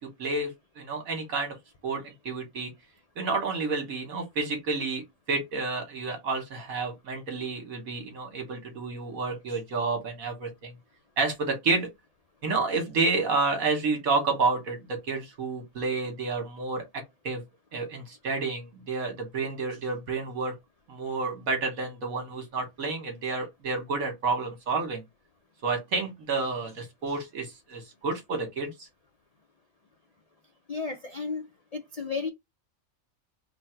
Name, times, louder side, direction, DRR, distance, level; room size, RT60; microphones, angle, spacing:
voice 1, 0.0-1.6 1.8-2.7 3.2-5.0 5.3-10.7 11.2-11.9 12.4-16.8 17.2-17.4 17.7-20.5 20.9-25.0 25.6-28.9, right 3 dB, 75° right, 1.8 m, -30 dB
voice 2, 30.7-31.5 31.7-32.3, left 4 dB, 80° left, 0.3 m, -33 dB
3.8 x 2.2 x 4.4 m
omnidirectional pair, 1.5 m